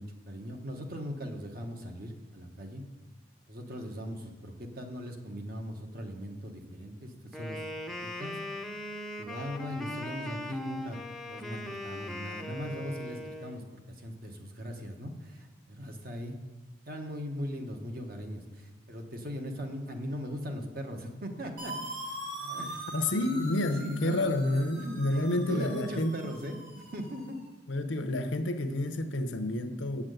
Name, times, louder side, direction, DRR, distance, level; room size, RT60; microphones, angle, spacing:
voice 1, 0.0-2.8 3.5-8.4 9.2-11.0 11.3-16.4 16.9-21.9 22.4-24.5 24.7-27.4, equal, 50° right, 4 dB, 1.2 m, -40 dB
Wind instrument woodwind instrument, 7.3-13.6, left 1 dB, ahead, 0.6 m, -39 dB
sound 1, 21.6-27.4, right 1 dB, 85° right, 2.8 m, -42 dB
voice 2, 22.9-26.2 27.7-30.0, left 1 dB, 85° left, 9 dB, 0.8 m, -29 dB
8.4 x 6.0 x 7.8 m, 1.2 s
head